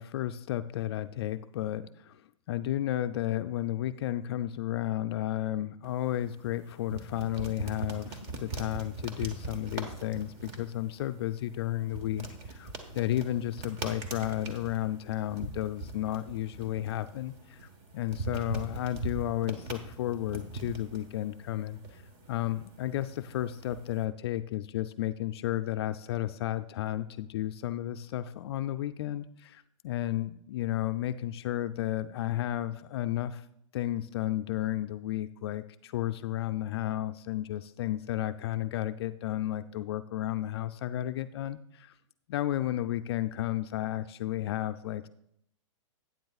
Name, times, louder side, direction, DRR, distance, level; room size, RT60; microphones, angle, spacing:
voice 1, 0.0-2.2 2.5-22.0 22.3-33.5 33.7-41.9 42.3-45.1, left 13 dB, 50° left, 10 dB, 0.4 m, -33 dB
sound 1, 5.8-24.0, right 3 dB, 35° right, 1.3 m, -42 dB
12.0 x 9.3 x 2.4 m, 0.73 s
hypercardioid pair, 140°, 17 cm